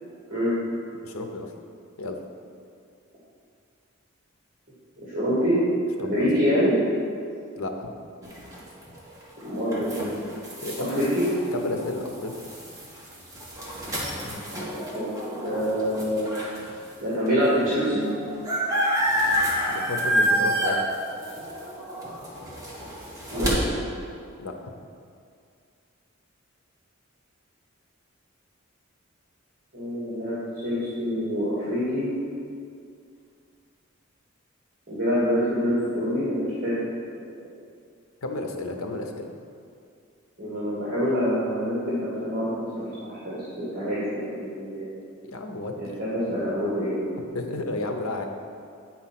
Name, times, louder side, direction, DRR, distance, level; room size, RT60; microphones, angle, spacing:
voice 1, 1.0-1.5 2.0-2.2 6.0-6.3 7.6-7.9 10.6-11.1 11.5-12.3 19.9-20.8 24.4-24.7 38.2-39.3 45.3-46.0 47.2-48.3, left 2 dB, 90° left, 4 dB, 0.9 m, -32 dB
voice 2, 5.0-5.6 6.0-6.7 9.4-9.9 10.8-11.2 14.6-15.1 15.4-16.3 17.0-18.1 23.3-23.7 29.7-30.4 30.6-32.1 34.9-36.7 40.4-42.5 42.8-44.9 45.8-47.0, equal, 40° right, -10 dB, 2.2 m, -26 dB
sound 1, 8.2-16.7 17.3-17.4 17.5-23.5, equal, 15° right, 1.5 m, -29 dB
9.4 x 4.4 x 5.9 m, 2.3 s
head